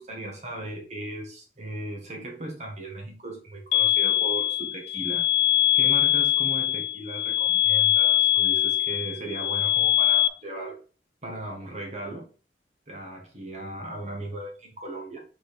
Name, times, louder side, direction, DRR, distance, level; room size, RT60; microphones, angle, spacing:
voice 1, 0.0-5.3 5.7-10.8 11.2-12.2 12.9-15.2, right 1 dB, 40° right, 0 dB, 1.4 m, -37 dB
sound 1, 3.7-10.3, left 12 dB, 80° left, 0.4 m, -22 dB
5.3 x 5.1 x 4.2 m, 0.36 s
head